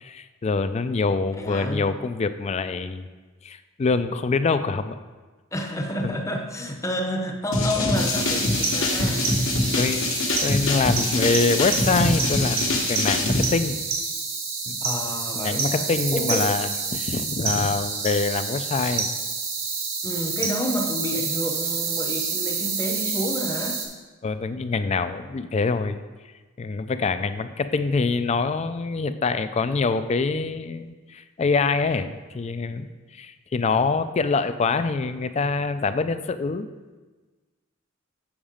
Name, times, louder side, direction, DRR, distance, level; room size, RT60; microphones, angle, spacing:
voice 1, 0.0-3.1 3.4-5.0 9.7-10.1 10.4-13.8 14.7-14.8 15.3-19.1 24.2-26.0 26.6-32.9 33.1-36.7, left 4 dB, 30° left, 11 dB, 0.3 m, -25 dB
voice 2, 1.4-1.8 5.5-9.4 14.8-15.9 16.1-16.6 20.0-23.8, left 1 dB, 15° left, 3 dB, 0.7 m, -29 dB
sound 1, 7.5-13.4, left 2 dB, 70° left, 1.2 m, -24 dB
sound 2, 7.9-23.9, right 4 dB, 85° right, 1.8 m, -28 dB
7.2 x 6.2 x 5.0 m, 1.3 s
head